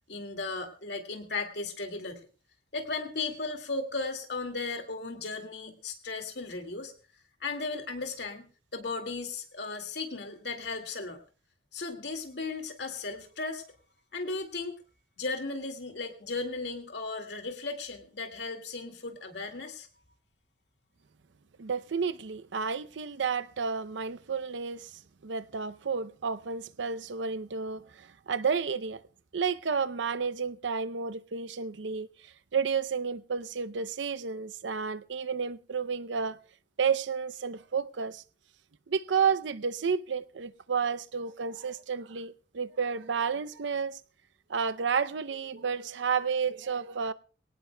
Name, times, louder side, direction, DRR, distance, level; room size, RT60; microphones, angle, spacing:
voice 1, 0.1-2.3 2.7-6.9 7.4-11.2 11.7-13.6 14.1-14.8 15.2-19.9, left 3 dB, 65° left, 2.2 m, -36 dB
voice 2, 21.6-29.0 29.3-36.4 36.8-38.2 38.9-44.0 44.5-47.1, right 6 dB, 85° right, 0.6 m, -31 dB
23.0 x 18.0 x 2.2 m
head